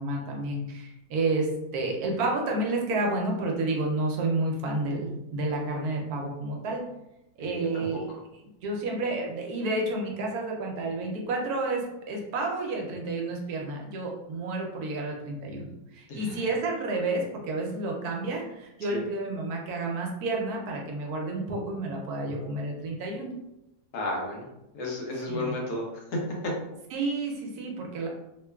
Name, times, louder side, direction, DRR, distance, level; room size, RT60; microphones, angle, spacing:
voice 1, 0.0-6.8 7.4-8.0 8.6-23.3 25.3-25.6 26.9-28.1, right 2 dB, 75° right, 0 dB, 1.0 m, -30 dB
voice 2, 7.4-8.2 16.1-16.5 18.9-19.0 23.9-24.5 24.7-26.5, left 1 dB, 75° left, -1 dB, 1.1 m, -33 dB
3.0 x 2.2 x 2.2 m, 0.89 s
omnidirectional pair, 1.7 m